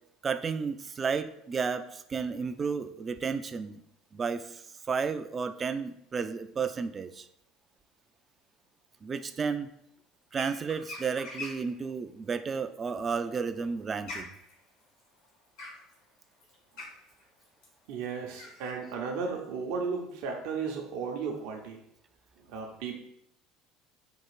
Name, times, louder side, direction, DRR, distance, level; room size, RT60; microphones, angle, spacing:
voice 1, 0.2-3.8 4.1-7.3 9.0-9.7 10.3-14.3, right 5 dB, 30° right, 10 dB, 0.3 m, -32 dB
sound 1, 10.3-11.7 13.1-18.7, left 2 dB, 75° left, 1.6 m, -44 dB
voice 2, 17.9-21.8 22.4-23.0, right 5 dB, 70° right, 1 dB, 0.7 m, -35 dB
4.4 x 2.5 x 4.7 m, 0.75 s
supercardioid pair, 95°, 0 cm